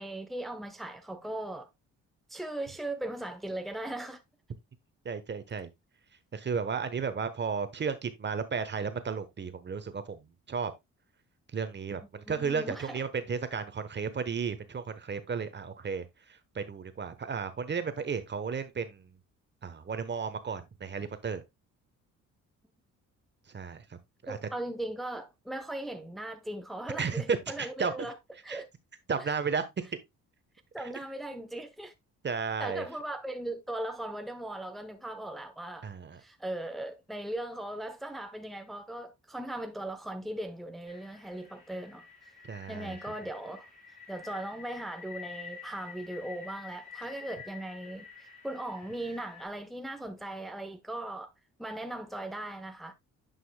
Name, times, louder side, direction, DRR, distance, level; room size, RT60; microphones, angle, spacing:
voice 1, 0.0-1.7 2.3-4.2 12.3-13.0 24.3-28.1 28.4-28.7 29.2-29.3 30.7-31.9 32.6-35.9 36.2-42.0 42.7-43.7 44.1-51.3 51.6-52.9, right 1 dB, ahead, 0.8 m, -38 dB
voice 2, 5.0-5.7 6.3-10.2 10.5-10.7 11.5-16.0 16.5-19.0 19.6-21.4 23.5-23.8 24.2-24.4 27.0-27.9 28.5-28.6 29.1-29.8 30.8-30.9 32.2-32.9 35.8-36.2 42.5-43.0, right 5 dB, 35° right, 1.1 m, -33 dB
sound 1, 40.9-49.5, left 6 dB, 20° left, 5.3 m, -49 dB
9.7 x 5.4 x 2.2 m
cardioid pair, 90°, 30 cm